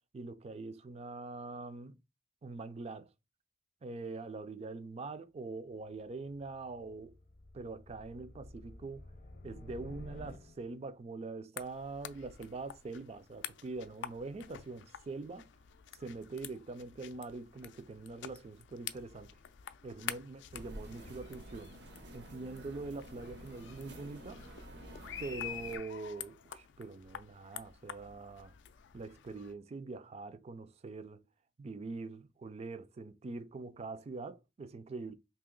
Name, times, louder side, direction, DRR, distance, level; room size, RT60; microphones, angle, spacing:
voice 1, 0.1-2.0 2.4-3.1 3.8-7.1 7.5-9.1 9.4-15.5 16.0-19.3 19.8-21.7 22.1-24.4 25.2-28.5 28.9-31.2 31.6-35.1, right 3 dB, 35° right, 0.4 m, -44 dB
sound 1, 5.7-10.9, left 2 dB, 55° left, 0.7 m, -52 dB
sound 2, 11.6-29.5, left 10 dB, 80° left, 0.4 m, -48 dB
sound 3, 20.5-25.8, right 1 dB, 65° right, 0.8 m, -50 dB
2.9 x 2.8 x 3.8 m
head